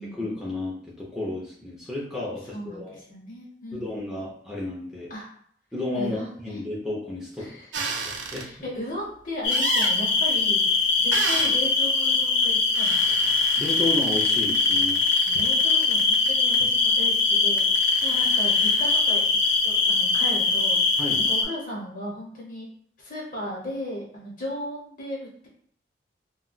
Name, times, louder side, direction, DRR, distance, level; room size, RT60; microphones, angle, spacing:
voice 1, 0.0-3.0 3.7-5.1 5.7-8.5 13.6-15.0 21.0-21.3, left 2 dB, ahead, -6 dB, 0.6 m, -32 dB
voice 2, 2.5-3.9 5.1-5.3 5.9-6.6 7.4-7.7 8.4-13.3 15.3-19.4 19.6-22.7 23.0-25.5, equal, 45° left, -2 dB, 1.0 m, -36 dB
sound 1, 7.7-8.5 9.5-10.0 11.1-11.5 12.7-16.6 17.6-19.0, right 4 dB, 90° right, 0.5 m, -33 dB
sound 2, 9.4-21.4, left 4 dB, 80° left, 0.6 m, -22 dB
2.3 x 2.2 x 3.8 m, 0.63 s
head